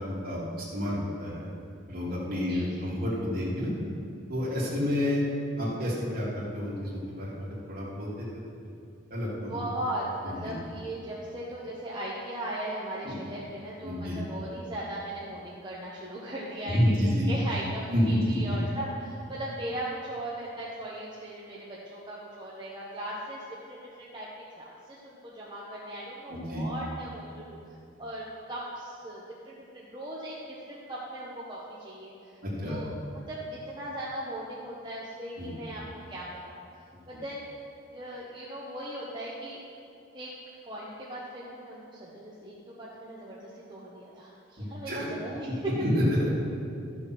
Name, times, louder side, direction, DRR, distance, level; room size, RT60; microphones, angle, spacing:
voice 1, 0.0-1.5 1.9-3.7 4.3-5.2 5.6-8.3 9.1-9.6 10.2-10.3 13.0-13.2 13.8-14.2 16.6-17.3 17.9-18.6 26.3-26.6 32.4-32.8 35.4-35.7 44.6-45.1 45.5-45.6 45.8-46.3, equal, 45° right, -6 dB, 2.9 m, -29 dB
voice 2, 2.5-2.9 9.5-23.4 23.7-24.3 24.5-27.6 28.0-32.9 33.3-33.4 33.7-35.8 36.1-36.6 37.1-37.5 37.9-39.6 40.1-40.3 40.6-45.7, right 1 dB, 20° right, -7 dB, 1.2 m, -38 dB
13.0 x 6.4 x 6.2 m, 2.6 s
head